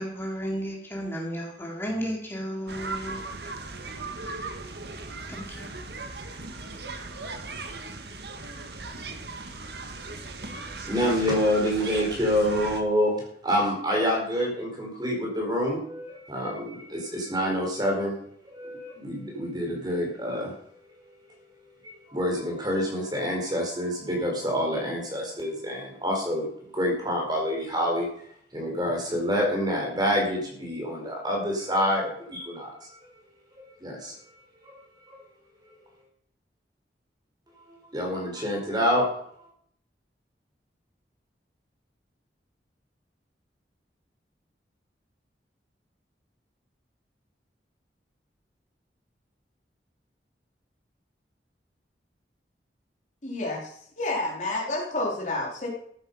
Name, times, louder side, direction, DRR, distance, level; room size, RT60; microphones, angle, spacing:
voice 1, 0.0-3.3 4.2-4.3 5.3-5.7, equal, 15° left, -2 dB, 3.6 m, -33 dB
sound 1, 2.7-12.8, right 3 dB, 65° right, 1.7 m, -38 dB
voice 2, 10.8-13.2 13.4-18.2 18.5-20.5 21.8-26.5 26.7-28.1 28.5-33.1 33.8-34.2 34.6-34.8 35.1-35.2 37.6-39.1, equal, 25° right, 0 dB, 4.4 m, -27 dB
voice 3, 53.2-55.7, left 2 dB, 45° left, -1 dB, 3.6 m, -30 dB
14.0 x 10.5 x 5.5 m, 0.66 s
head